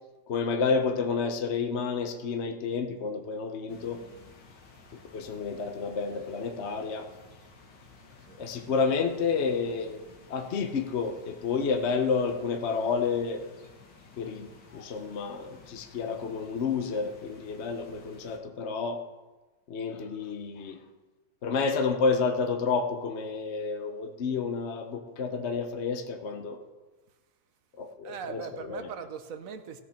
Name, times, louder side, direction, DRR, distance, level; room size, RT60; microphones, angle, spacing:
voice 1, 0.3-4.0 5.1-7.1 8.4-10.0 10.3-13.4 14.2-19.0 19.7-20.8 21.4-26.6 27.8-28.4 28.7-28.8, left 5 dB, 50° left, 5 dB, 0.9 m, -30 dB
sound 1, 3.7-18.4, left 4 dB, 75° left, 2.1 m, -54 dB
voice 2, 28.0-29.8, right 7 dB, 60° right, 9 dB, 1.0 m, -40 dB
17.5 x 6.7 x 4.4 m, 1.2 s
omnidirectional pair, 2.0 m